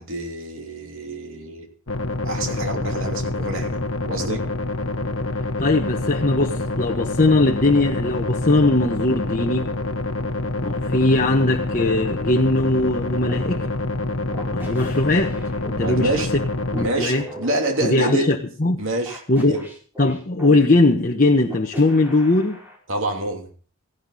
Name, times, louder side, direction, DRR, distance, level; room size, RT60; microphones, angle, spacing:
voice 1, 0.0-1.7 2.2-4.5 15.8-16.3 16.8-18.3 18.8-19.2 19.5-19.7 22.9-23.5, right 1 dB, 65° right, 3.1 m, -27 dB
sound 1, 1.9-16.9, left 2 dB, 65° left, 1.1 m, -26 dB
voice 2, 5.6-9.7 10.6-13.7 14.5-15.4 15.8-16.1 16.7-17.2 17.8-18.8 19.3-19.5 20.0-22.6, left 2 dB, 40° left, 1.2 m, -20 dB
sound 2, 13.3-13.5 14.3-15.8 16.7-18.2 19.1-20.6 21.4-22.8, equal, 10° right, 5.5 m, -37 dB
17.5 x 15.0 x 4.2 m
head